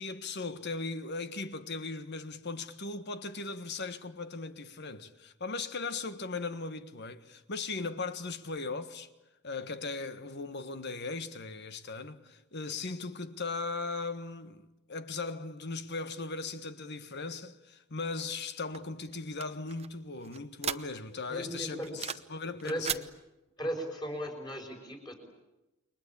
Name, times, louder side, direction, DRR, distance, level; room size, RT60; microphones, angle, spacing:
voice 1, 0.0-9.1 9.4-23.0, left 3 dB, 50° left, 1.5 m, -38 dB
sound 1, 18.7-21.2 21.6-22.4 22.6-23.1, right 8 dB, 30° right, 0.9 m, -37 dB
voice 2, 21.3-21.9 22.6-22.9 23.6-25.1, equal, 20° left, 5.5 m, -36 dB
29.0 x 23.0 x 8.6 m
head